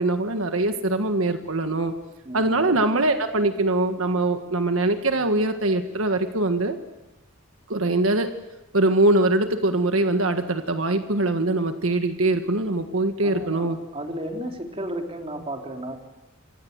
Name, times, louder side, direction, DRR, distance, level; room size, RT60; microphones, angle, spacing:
voice 1, 0.0-1.9 2.3-6.8 7.7-8.3 8.7-13.8, right 2 dB, 80° right, 7 dB, 1.6 m, -22 dB
voice 2, 2.2-2.7 13.2-16.0, right 1 dB, 30° right, 3 dB, 3.4 m, -33 dB
29.0 x 25.5 x 8.1 m, 1.0 s
head